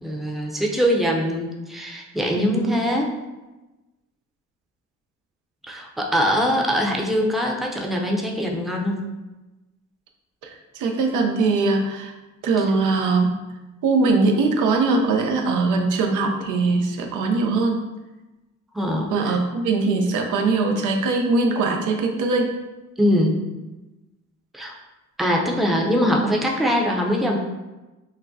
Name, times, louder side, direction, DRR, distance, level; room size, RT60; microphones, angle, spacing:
voice 1, 0.0-3.1 5.7-9.0 18.7-19.4 23.0-23.4 24.5-24.7 25.2-27.4, equal, ahead, -1 dB, 0.5 m, -22 dB
voice 2, 2.4-2.8 10.4-12.1 12.4-13.3 13.8-17.8 19.1-22.5, right 3 dB, 85° right, 3 dB, 0.6 m, -21 dB
5.9 x 2.1 x 2.6 m, 1.1 s
cardioid pair, 90°, 30 cm